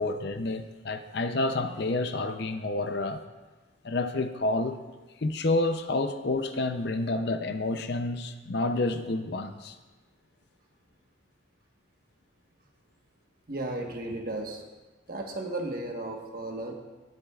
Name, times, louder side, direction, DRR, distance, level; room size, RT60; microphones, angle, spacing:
voice 1, 0.0-3.2 3.8-4.8 5.2-9.8, left 2 dB, 55° left, 8 dB, 0.6 m, -29 dB
voice 2, 13.5-14.6 15.1-16.7, right 2 dB, 45° right, 1 dB, 1.3 m, -34 dB
18.0 x 8.6 x 2.4 m, 1.2 s
head